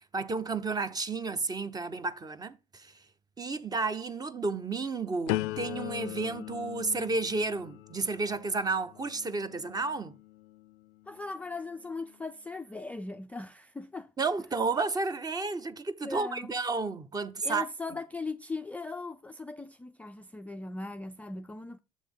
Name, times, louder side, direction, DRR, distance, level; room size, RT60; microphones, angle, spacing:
voice 1, 0.1-2.9 3.4-10.1 14.2-17.7, right 3 dB, 20° right, 0.7 m, -32 dB
sound 1, 5.3-11.1 11.7-12.1, left 16 dB, 80° left, 0.4 m, -39 dB
voice 2, 11.1-14.1 16.0-16.5 17.4-21.8, left 3 dB, 10° left, 0.3 m, -39 dB
7.2 x 3.4 x 6.0 m
supercardioid pair, 90°, 18 cm